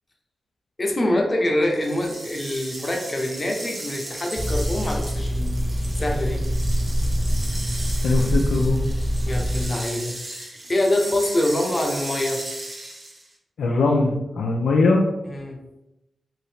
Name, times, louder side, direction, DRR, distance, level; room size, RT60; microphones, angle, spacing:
voice 1, 0.8-5.6 6.0-6.4 9.3-12.4 15.2-15.6, left 1 dB, 40° left, 0 dB, 0.8 m, -25 dB
sound 1, 1.7-13.3, right 1 dB, 45° right, 0.8 m, -36 dB
sound 2, 4.4-9.7, equal, 5° right, 0.5 m, -24 dB
voice 2, 8.0-8.8 13.6-15.0, left 3 dB, 80° left, 0 dB, 0.3 m, -20 dB
2.7 x 2.6 x 3.3 m, 0.94 s
supercardioid pair, 40°, 0 cm